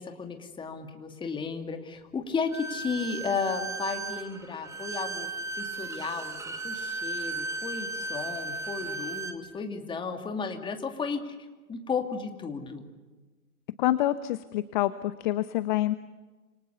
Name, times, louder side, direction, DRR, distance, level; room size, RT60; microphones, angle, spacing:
voice 1, 0.0-5.3 5.5-11.4 11.7-12.9, left 5 dB, 10° left, 5 dB, 2.6 m, -34 dB
Bowed string instrument, 2.5-9.4, right 3 dB, 5° right, 1.5 m, -36 dB
voice 2, 13.8-16.0, left 15 dB, 35° left, 14 dB, 0.9 m, -27 dB
29.0 x 27.0 x 6.9 m, 1.2 s
figure-of-eight pair, 115°, 44 cm